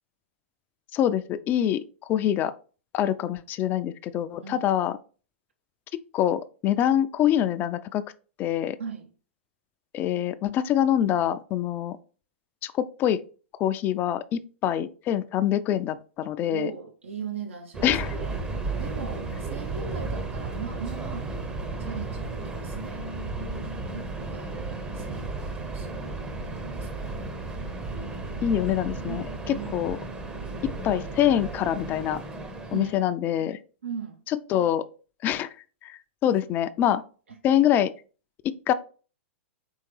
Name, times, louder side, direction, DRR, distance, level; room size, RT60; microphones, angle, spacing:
voice 1, 0.9-1.8 2.1-2.5 2.9-5.0 6.1-8.1 8.4-8.8 9.9-12.0 12.6-13.2 13.6-16.7 17.8-18.1 28.4-30.0 30.6-32.2 32.7-33.6 34.5-34.8 35.2-35.5 35.8-37.0 37.4-37.9 38.4-38.7, left 11 dB, 30° left, 0.3 m, -25 dB
voice 2, 4.4-4.7 8.8-9.1 16.4-18.4 18.8-21.3 21.8-23.6 23.9-24.7 24.9-27.1 29.0-29.9 32.7-33.0 33.8-34.2 36.3-36.4 37.3-37.4, right 6 dB, 75° right, 0.6 m, -39 dB
Subway metro underground, 17.7-33.1, right 3 dB, 15° right, 0.6 m, -34 dB
4.5 x 3.4 x 3.2 m
hypercardioid pair, 115°, 7 cm